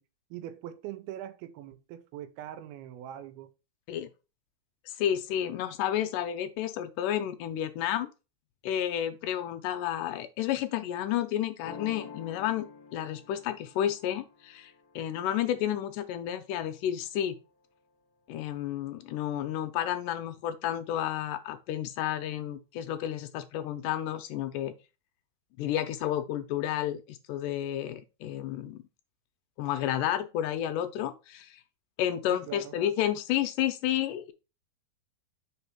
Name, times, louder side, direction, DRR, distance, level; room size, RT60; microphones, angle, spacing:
voice 1, 0.3-3.5 32.3-32.7, right 11 dB, 85° right, 2.7 m, -42 dB
voice 2, 4.9-8.1 8.6-12.7 12.9-17.4 18.3-24.7 25.6-28.8 29.6-31.6 32.0-34.3, left 11 dB, 80° left, 1.9 m, -31 dB
sound 1, 11.6-17.2, left 6 dB, 65° left, 1.6 m, -49 dB
5.3 x 3.8 x 5.8 m
omnidirectional pair, 4.3 m